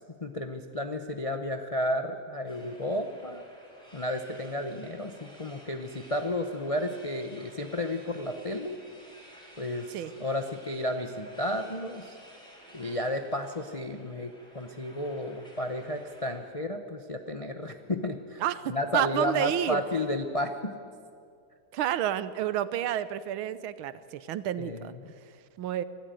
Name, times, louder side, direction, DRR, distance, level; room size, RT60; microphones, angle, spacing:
voice 1, 0.1-3.4 3.9-8.8 9.6-12.2 12.7-18.4 18.7-20.7 24.6-25.1, left 1 dB, 55° left, 6 dB, 0.3 m, -32 dB
sound 1, 2.4-16.3, equal, ahead, 4.7 m, -54 dB
voice 2, 18.4-19.8 21.7-24.9 25.6-25.8, right 11 dB, 75° right, 15 dB, 1.6 m, -30 dB
24.5 x 14.0 x 9.2 m, 2.3 s
omnidirectional pair, 2.3 m